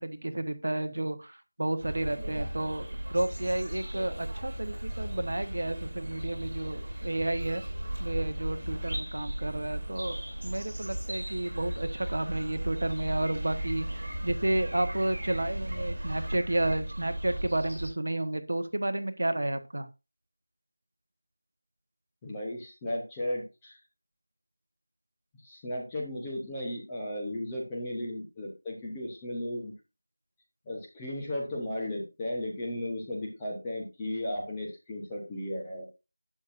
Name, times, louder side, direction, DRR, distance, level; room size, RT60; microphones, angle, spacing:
voice 1, 0.0-7.6 8.0-19.9, right 1 dB, 50° right, 8 dB, 1.2 m, -31 dB
sound 1, 1.8-17.9, right 1 dB, 35° right, 6.8 m, -36 dB
voice 2, 22.2-23.8 25.4-29.7 30.7-35.8, left 1 dB, 5° left, -3 dB, 0.8 m, -35 dB
11.5 x 8.6 x 2.6 m, 0.28 s
figure-of-eight pair, 180°, 0 cm